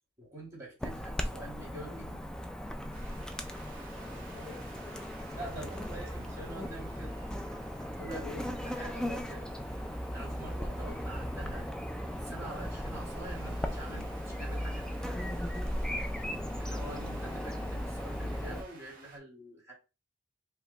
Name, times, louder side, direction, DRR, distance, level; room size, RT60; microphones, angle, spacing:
voice 1, 0.2-2.3 5.4-7.2 8.0-9.7 10.1-11.7 12.2-15.0 16.6-19.7, right 1 dB, 15° right, -4 dB, 1.9 m, -46 dB
Chirp tweet / Buzz, 0.8-18.6, equal, 5° left, 0.3 m, -37 dB
sound 1, 2.9-19.2, right 3 dB, 50° right, 1.4 m, -54 dB
voice 2, 4.0-5.1 8.1-8.5 15.9-16.3 16.5-17.4, left 3 dB, 85° left, -3 dB, 1.6 m, -50 dB
4.8 x 2.2 x 3.3 m, 0.30 s
head